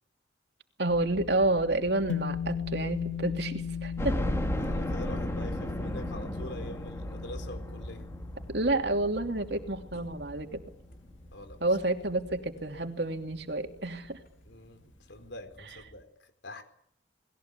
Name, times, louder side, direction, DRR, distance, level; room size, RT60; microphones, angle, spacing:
voice 1, 0.8-4.2 8.5-10.6 11.6-14.2, right 2 dB, 60° right, 5 dB, 2.8 m, -29 dB
sound 1, 0.9-14.9, equal, 50° left, 5.9 m, -48 dB
sound 2, 2.1-10.5, left 7 dB, 85° left, 2.4 m, -38 dB
sound 3, 4.0-12.9 13.4-13.5 13.8-13.9 15.1-15.2 15.5-15.6, equal, 15° left, 2.6 m, -36 dB
voice 2, 4.6-8.1 11.3-11.6 14.4-16.6, left 1 dB, 70° left, 9 dB, 4.3 m, -45 dB
29.0 x 20.5 x 8.3 m, 0.68 s
head